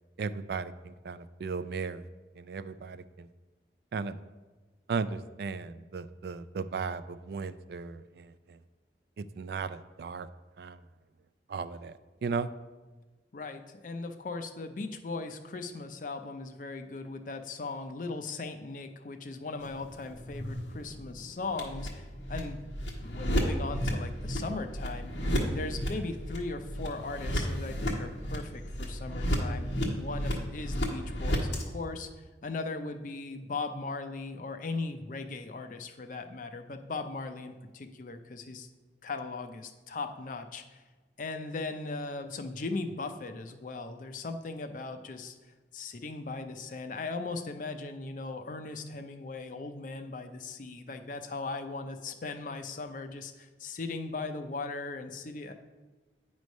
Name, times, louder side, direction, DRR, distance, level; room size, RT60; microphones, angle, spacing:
voice 1, 0.2-2.1 2.4-3.3 3.9-4.2 4.9-8.6 9.2-10.3 10.6-10.8 11.5-11.9 12.2-12.5, right 5 dB, 60° right, 13 dB, 0.3 m, -36 dB
voice 2, 13.3-22.6 22.9-25.1 25.5-29.7 30.0-32.1 32.4-38.7 39.0-40.8 41.2-45.4 45.7-55.5, left 3 dB, 50° left, 7 dB, 0.5 m, -38 dB
sound 1, 19.6-31.6, equal, 85° left, 1.3 m, -33 dB
9.2 x 3.2 x 5.2 m, 1.3 s
head